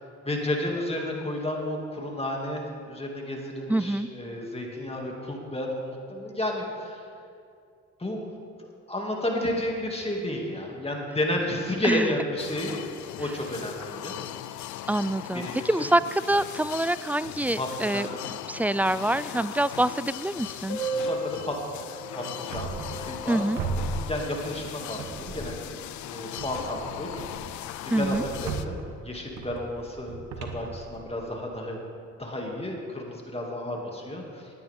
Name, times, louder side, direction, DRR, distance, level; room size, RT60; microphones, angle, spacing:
voice 1, 0.2-7.0 8.0-8.3 8.9-12.8 13.2-14.1 15.3-15.9 17.6-18.0 20.9-21.6 22.1-23.5 24.0-25.8 26.0-27.6 27.8-28.8 29.0-31.8 32.2-34.5, left 1 dB, 20° left, -1 dB, 2.6 m, -32 dB
voice 2, 3.7-4.1 11.8-12.1 14.9-18.1 18.5-20.8 23.3-23.6 27.9-28.2, right 1 dB, 5° right, 16 dB, 0.3 m, -25 dB
sound 1, 12.4-28.7, left 13 dB, 70° left, 0.5 m, -39 dB
Piano, 20.7-26.1 26.3-26.4 26.6-26.8 27.1-27.2 28.0-28.1, right 3 dB, 85° left, 2.7 m, -37 dB
sound 2, 22.5-23.3 23.6-24.6 25.0-25.8 26.4-31.5, right 4 dB, 75° right, 1.3 m, -36 dB
18.5 x 9.8 x 3.7 m, 2.4 s
supercardioid pair, 60°, 31 cm